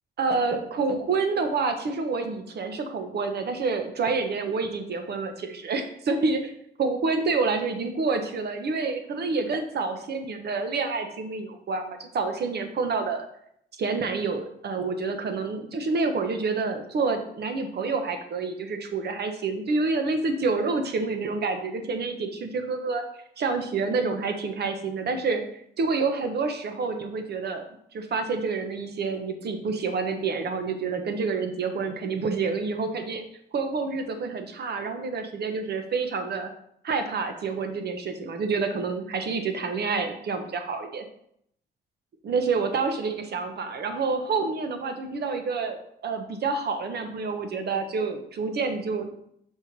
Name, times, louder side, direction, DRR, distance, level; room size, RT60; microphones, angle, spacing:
voice 1, 0.2-6.5 6.8-13.3 13.8-23.0 23.4-25.4 25.8-27.7 27.9-33.2 33.5-36.5 36.8-41.0 42.2-49.1, right 4 dB, 55° right, 6 dB, 1.0 m, -28 dB
5.7 x 4.4 x 4.6 m, 0.71 s
cardioid pair, 90°, 20 cm